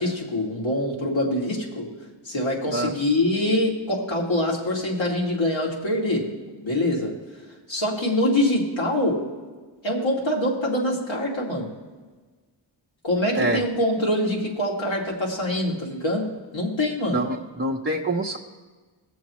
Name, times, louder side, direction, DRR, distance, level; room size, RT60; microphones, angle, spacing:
voice 1, 0.0-1.9 2.2-6.3 6.6-7.2 7.7-9.2 9.8-11.7 13.0-17.2, left 1 dB, 65° left, -3 dB, 2.6 m, -24 dB
voice 2, 17.1-18.4, right 2 dB, 25° right, -3 dB, 0.9 m, -25 dB
19.0 x 7.2 x 3.2 m, 1.4 s
cardioid pair, 60°, 48 cm